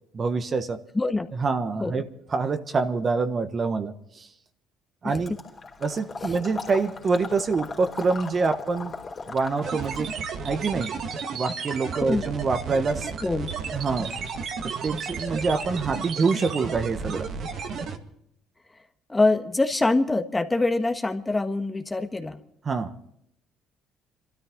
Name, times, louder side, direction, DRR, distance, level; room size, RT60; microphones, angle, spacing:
voice 1, 0.1-0.8 1.4-2.0 2.3-4.3 5.0-5.3 5.8-8.9 9.3-10.9 11.3-13.1 13.7-14.1 14.8-17.3 22.6-22.9, right 4 dB, 40° right, 1.4 m, -26 dB
voice 2, 0.9-1.3 1.8-2.0 5.0-5.1 6.2-6.3 12.0-12.3 13.2-13.5 19.1-22.4, left 2 dB, 15° left, 1.5 m, -24 dB
Water / Liquid, 5.3-10.1, left 4 dB, 40° left, 3.4 m, -38 dB
sound 1, 9.6-18.0, right 5 dB, 60° right, 1.9 m, -33 dB
26.5 x 13.0 x 3.9 m
supercardioid pair, 75°, 0 cm